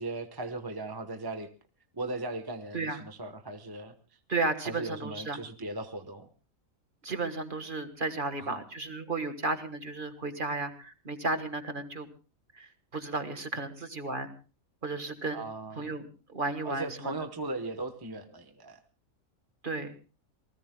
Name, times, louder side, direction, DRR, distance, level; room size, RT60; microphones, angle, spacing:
voice 1, 0.0-1.5 1.9-3.9 4.6-6.3 8.4-8.6 15.3-16.0 16.6-18.8, right 2 dB, 20° right, 7 dB, 1.0 m, -38 dB
voice 2, 4.3-5.4 7.0-12.1 12.6-14.3 14.8-15.4 15.8-16.1 16.3-17.1 19.6-19.9, right 3 dB, 40° right, 8 dB, 1.7 m, -33 dB
27.5 x 19.5 x 2.2 m, 0.34 s
omnidirectional pair, 1.4 m